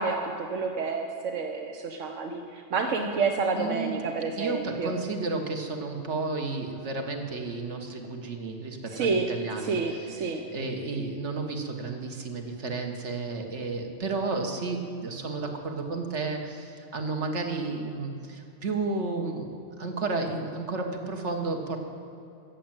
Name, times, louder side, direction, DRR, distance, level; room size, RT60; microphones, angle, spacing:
voice 1, 0.0-4.9 8.9-9.3 9.6-10.4, right 4 dB, 90° right, 3 dB, 1.3 m, -29 dB
voice 2, 3.6-4.1 4.4-21.8, right 3 dB, 70° right, 4 dB, 1.8 m, -32 dB
15.0 x 7.6 x 8.9 m, 2.7 s
omnidirectional pair, 1.2 m